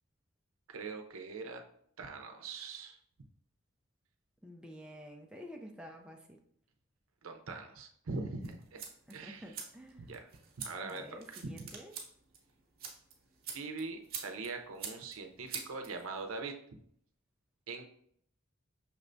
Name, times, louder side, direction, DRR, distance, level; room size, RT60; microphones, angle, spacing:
voice 1, 0.7-1.6 2.0-3.0 7.2-8.8 9.1-9.4 10.0-10.2 10.6-11.5 13.5-16.6 17.7-17.8, right 3 dB, 80° right, 5 dB, 0.6 m, -42 dB
voice 2, 4.4-6.4 9.1-10.2 10.8-11.9, equal, 5° right, 1 dB, 0.4 m, -50 dB
sound 1, 8.4-16.4, right 6 dB, 45° right, 0.9 m, -47 dB
5.9 x 3.3 x 2.6 m, 0.67 s
head